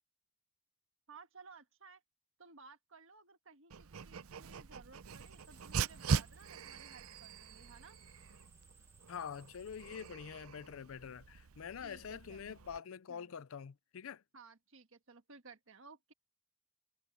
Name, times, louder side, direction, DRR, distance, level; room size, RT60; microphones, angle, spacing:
voice 1, 1.1-2.0 2.4-8.0 11.8-12.5 13.1-13.3 14.3-16.1, right 4 dB, 65° right, 1.6 m, -58 dB
Dog, 3.7-12.8, right 5 dB, 85° right, 0.6 m, -41 dB
sound 1, 5.1-10.1, right 3 dB, 10° right, 1.3 m, -64 dB
voice 2, 9.1-14.2, left 7 dB, 70° left, 0.5 m, -46 dB
head